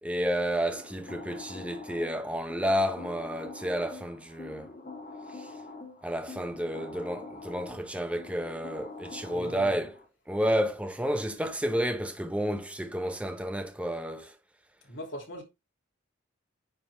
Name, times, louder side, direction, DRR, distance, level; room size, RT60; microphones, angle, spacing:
voice 1, 0.0-4.7 5.4-5.5 6.0-9.9 10.3-14.3, equal, 5° right, 0.7 m, -31 dB
sound 1, 0.6-10.1, left 3 dB, 40° left, 2.5 m, -45 dB
voice 2, 9.2-9.8 14.8-15.4, equal, 65° left, 2.8 m, -41 dB
9.4 x 3.5 x 3.3 m
head